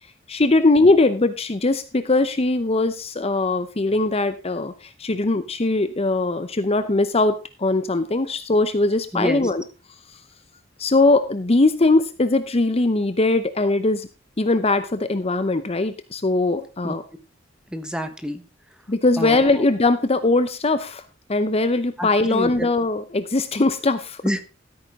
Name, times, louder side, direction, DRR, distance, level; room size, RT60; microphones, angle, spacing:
voice 1, 0.3-9.6 10.8-14.1 14.4-17.0 18.9-21.0 21.3-24.2, left 2 dB, 35° left, 12 dB, 0.8 m, -20 dB
voice 2, 9.1-9.4 16.8-16.9 17.7-18.4 19.2-19.6 22.0-22.7 24.2-24.4, equal, 5° right, 9 dB, 1.3 m, -28 dB
14.0 x 8.8 x 3.7 m, 0.31 s
head